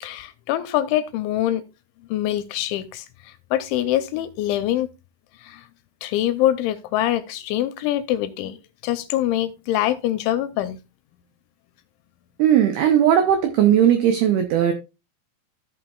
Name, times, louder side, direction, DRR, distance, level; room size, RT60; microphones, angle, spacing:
voice 1, 0.0-1.6 2.1-4.9 5.4-5.6 6.0-8.6 8.8-10.8, left 13 dB, 85° left, 2.9 m, -24 dB
voice 2, 12.4-14.7, right 10 dB, 85° right, 2.2 m, -17 dB
15.0 x 5.7 x 2.3 m
omnidirectional pair, 5.7 m